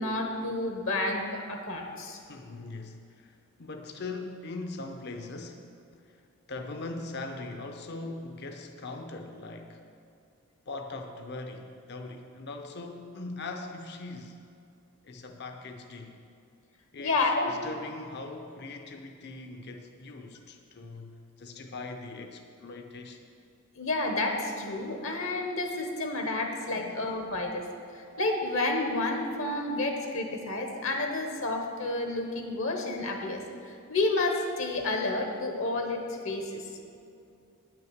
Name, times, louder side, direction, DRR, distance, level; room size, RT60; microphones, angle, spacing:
voice 1, 0.0-2.2 17.0-17.5 23.8-27.7 27.9-36.7, left 2 dB, 65° left, 3 dB, 1.1 m, -30 dB
voice 2, 2.3-9.8 10.7-14.4 15.0-16.2 16.9-17.2 17.5-23.3 26.7-27.1, left 3 dB, 50° left, 5 dB, 0.7 m, -41 dB
9.7 x 6.0 x 7.9 m, 2.5 s
head